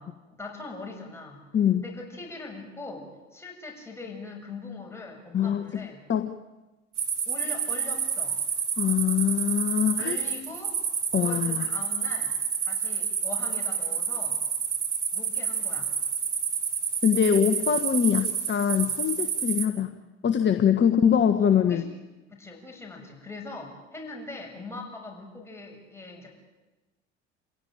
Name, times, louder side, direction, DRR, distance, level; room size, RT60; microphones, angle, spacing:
voice 1, 0.0-1.4 1.8-6.0 7.3-8.4 9.9-10.8 11.2-12.3 12.6-14.4 15.1-15.9 21.4-21.9 22.3-26.4, left 3 dB, 5° left, 0 dB, 7.3 m, -41 dB
voice 2, 5.3-5.8 6.1-6.3 8.8-10.2 11.1-11.7 17.0-19.9 20.2-21.8, left 8 dB, 30° left, 8 dB, 1.4 m, -23 dB
sound 1, 7.0-19.7, right 7 dB, 85° right, 2.2 m, -29 dB
27.0 x 17.0 x 9.1 m, 1.1 s
figure-of-eight pair, 60°, 35 cm